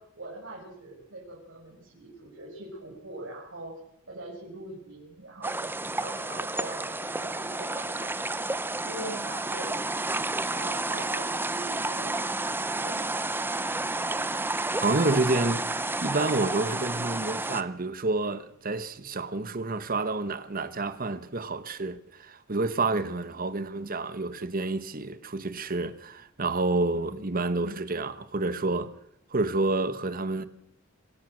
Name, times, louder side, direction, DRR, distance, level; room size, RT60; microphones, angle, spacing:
voice 1, 0.0-3.7 4.1-8.4 8.7-10.1 10.5-13.2 26.9-27.2, right 1 dB, 70° right, 6.2 m, -43 dB
sound 1, 5.4-17.6, right 2 dB, 10° right, 0.8 m, -31 dB
voice 2, 14.8-15.7 16.0-28.9 29.3-30.5, right 2 dB, 45° right, 1.3 m, -29 dB
26.5 x 17.0 x 6.4 m
head